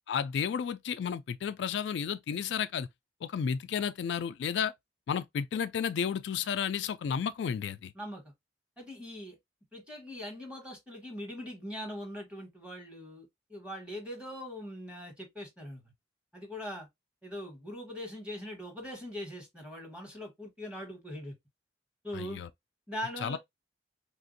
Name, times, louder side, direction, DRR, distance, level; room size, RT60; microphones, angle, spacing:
voice 1, 0.1-2.9 3.2-4.7 5.1-7.9 22.1-22.5 23.2-23.4, left 7 dB, 75° left, 0.3 m, -32 dB
voice 2, 8.8-9.4 9.7-15.8 16.3-16.9 17.2-21.3 22.0-22.4 22.9-23.4, equal, 5° right, 1.3 m, -41 dB
3.5 x 2.5 x 2.5 m
head